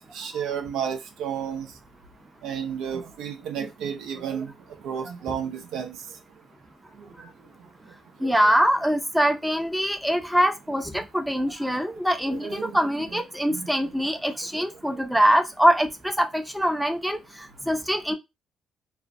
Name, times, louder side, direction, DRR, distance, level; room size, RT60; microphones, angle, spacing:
voice 1, 0.1-1.7 2.4-4.5 4.8-6.0 12.3-12.8 13.5-13.7, right 8 dB, 90° right, 0.5 m, -31 dB
voice 2, 8.2-18.1, equal, 5° right, 0.5 m, -23 dB
2.4 x 2.1 x 2.5 m
cardioid pair, 90°, 0 cm